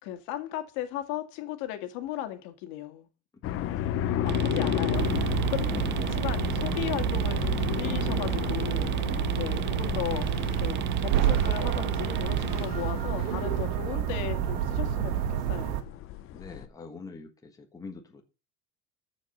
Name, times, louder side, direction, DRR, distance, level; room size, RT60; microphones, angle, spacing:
voice 1, 0.0-3.1 4.4-9.0 9.3-10.3 10.6-15.8, left 13 dB, 65° left, 2.1 m, -36 dB
sound 1, 3.4-16.7, left 10 dB, 40° left, 0.9 m, -33 dB
voice 2, 3.5-4.1 5.6-6.2 9.2-9.5 16.3-18.2, left 4 dB, 10° left, 1.3 m, -45 dB
sound 2, 4.2-12.7, right 14 dB, 35° right, 0.6 m, -35 dB
sound 3, 4.9-15.8, right 11 dB, 65° right, 1.5 m, -29 dB
14.0 x 5.2 x 5.4 m
cardioid pair, 155°, 32 cm